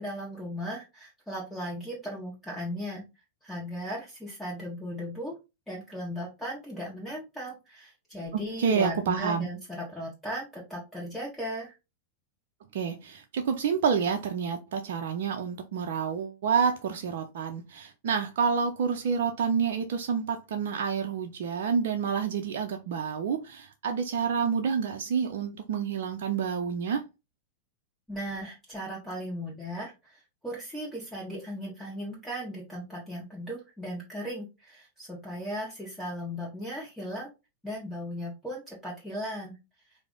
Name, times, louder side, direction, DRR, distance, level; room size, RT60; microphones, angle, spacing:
voice 1, 0.0-3.0 3.4-5.3 5.7-11.7 28.1-37.3 37.6-39.5, equal, 5° left, 1.3 m, -37 dB
voice 2, 8.6-9.5 12.7-27.0, right 6 dB, 55° right, 0.5 m, -28 dB
4.7 x 2.0 x 3.6 m
figure-of-eight pair, 90°, 0 cm